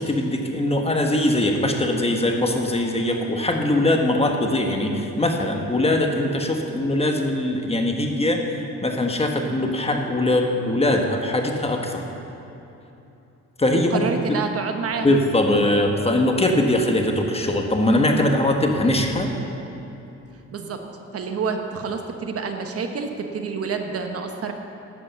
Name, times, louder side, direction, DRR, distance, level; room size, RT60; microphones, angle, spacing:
voice 1, 0.0-12.0 13.6-14.0 14.3-14.4 15.0-19.3, left 1 dB, 20° left, 2 dB, 1.4 m, -21 dB
voice 2, 13.7-15.2 20.5-20.8 21.1-24.5, right 5 dB, 50° right, 5 dB, 1.1 m, -28 dB
11.0 x 8.5 x 7.1 m, 2.9 s
cardioid pair, 90°, 30 cm